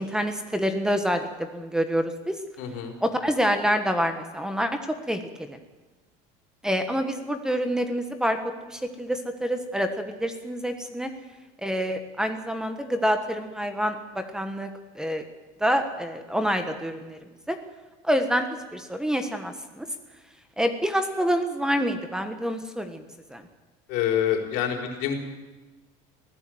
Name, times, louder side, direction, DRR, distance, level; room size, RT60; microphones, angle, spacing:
voice 1, 0.0-2.4 3.0-4.8 5.1-5.6 6.6-11.1 11.6-14.7 14.9-15.2 15.6-17.2 17.5-17.6 18.0-19.9 20.6-23.0 23.3-23.4, equal, 5° right, 7 dB, 1.3 m, -27 dB
voice 2, 2.6-2.9 23.9-25.2, left 9 dB, 65° left, 3 dB, 4.2 m, -26 dB
23.0 x 15.5 x 7.8 m, 1.2 s
cardioid pair, 145°, 16 cm